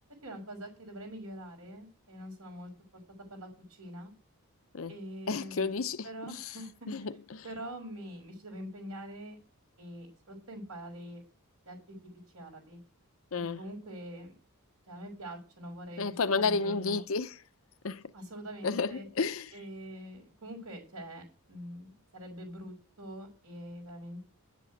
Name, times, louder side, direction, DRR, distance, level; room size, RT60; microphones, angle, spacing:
voice 1, 0.2-2.7 3.3-4.1 4.9-5.8 6.0-7.1 7.4-9.4 9.8-11.2 11.6-12.0 12.3-12.8 13.3-14.3 14.9-17.0 18.1-19.0 19.5-24.3, equal, 80° right, 4.7 m, -44 dB
voice 2, 5.3-6.5 6.9-7.4 13.3-13.6 16.0-17.4 17.8-18.0 18.6-19.5, left 4 dB, 65° left, 0.7 m, -31 dB
11.0 x 7.5 x 7.9 m
head